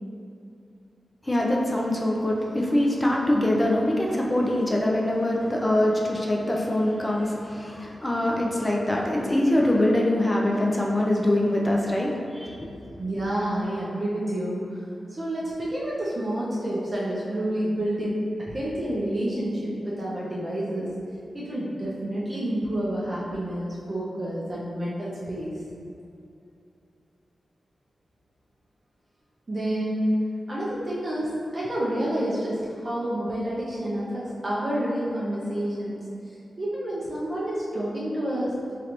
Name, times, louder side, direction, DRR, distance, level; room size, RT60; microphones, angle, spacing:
voice 1, 1.2-12.7, left 1 dB, 15° left, -2 dB, 0.4 m, -23 dB
voice 2, 13.0-14.8 15.1-20.9 21.3-25.5 29.5-30.1 30.5-38.5, right 1 dB, 30° right, -7 dB, 0.5 m, -29 dB
3.8 x 3.2 x 2.9 m, 2.6 s
wide cardioid pair, 135°, 0 cm